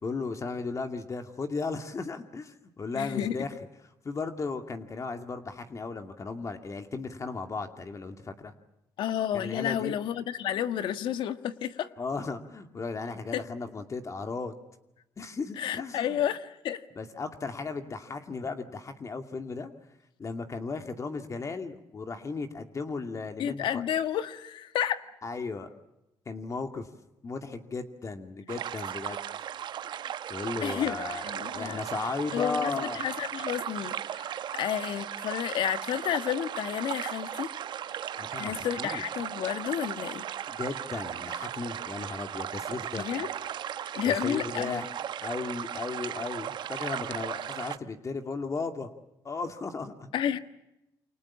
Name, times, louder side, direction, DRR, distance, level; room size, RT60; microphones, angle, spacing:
voice 1, 0.0-3.5 4.0-8.5 9.3-9.9 12.0-14.6 15.2-16.2 17.0-19.7 20.2-23.8 25.2-25.7 26.3-26.9 27.2-29.2 30.3-31.3 31.5-33.0 38.2-39.0 40.5-43.1 44.0-44.9 45.2-48.9 49.2-50.1, left 4 dB, 40° left, 6 dB, 2.4 m, -35 dB
voice 2, 2.9-3.4 9.0-11.9 13.3-13.4 15.6-16.8 23.4-25.0 30.6-31.8 32.3-37.5 38.4-40.3 42.9-43.3 43.9-44.8 50.1-50.4, left 10 dB, 75° left, 11 dB, 1.5 m, -31 dB
sound 1, 28.5-47.8, right 10 dB, 65° right, 1.0 m, -36 dB
28.5 x 25.0 x 7.3 m, 0.91 s
cardioid pair, 80°, 8 cm